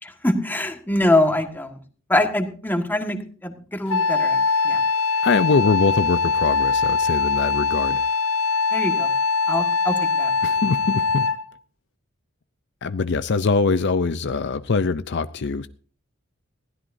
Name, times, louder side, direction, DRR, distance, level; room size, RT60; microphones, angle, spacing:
voice 1, 0.0-1.8 2.1-4.8 8.7-9.1 9.5-10.3, left 1 dB, 10° left, 1.7 m, -24 dB
Wind instrument woodwind instrument, 3.9-11.5, left 4 dB, 85° left, 1.0 m, -22 dB
voice 2, 5.2-8.0 10.4-11.3 12.8-15.7, left 4 dB, 60° left, 0.5 m, -23 dB
21.0 x 16.0 x 2.7 m
head